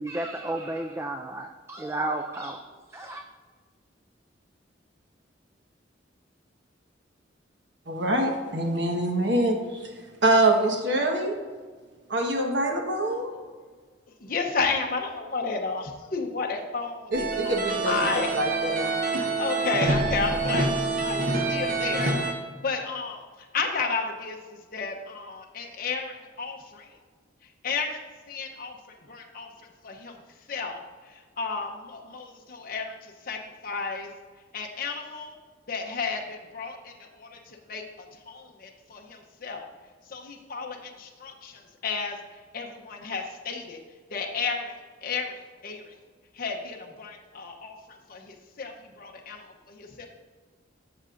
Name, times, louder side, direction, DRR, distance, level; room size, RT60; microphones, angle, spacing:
voice 1, 0.0-2.6 2.9-3.2, right 2 dB, 15° right, 5 dB, 0.3 m, -32 dB
voice 2, 7.9-9.9 10.2-11.3 12.1-13.3 17.1-18.0 18.3-19.3, right 1 dB, 70° right, 2 dB, 1.3 m, -25 dB
voice 3, 14.2-18.3 19.4-27.0 27.4-28.0 28.3-28.8 29.1-34.1 34.5-35.4 35.7-37.8 38.1-39.7 40.0-43.8 44.1-44.7 45.0-46.0 46.3-50.1, left 4 dB, 50° left, 1 dB, 0.8 m, -33 dB
sound 1, 17.1-22.3, right 3 dB, 45° right, 1.0 m, -27 dB
12.5 x 6.7 x 2.6 m, 1.5 s
head